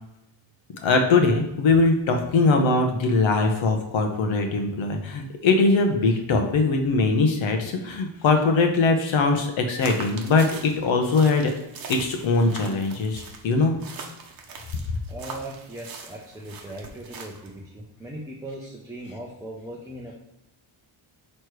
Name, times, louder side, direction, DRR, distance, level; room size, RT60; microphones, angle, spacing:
voice 1, 0.8-11.5 11.9-13.8, left 3 dB, 70° left, 4 dB, 0.9 m, -21 dB
sound 1, 9.8-17.6, right 5 dB, 45° right, 0.9 m, -41 dB
voice 2, 15.1-20.2, right 1 dB, 5° right, -5 dB, 0.6 m, -38 dB
6.3 x 3.2 x 4.6 m, 0.88 s
wide cardioid pair, 160°, 50 cm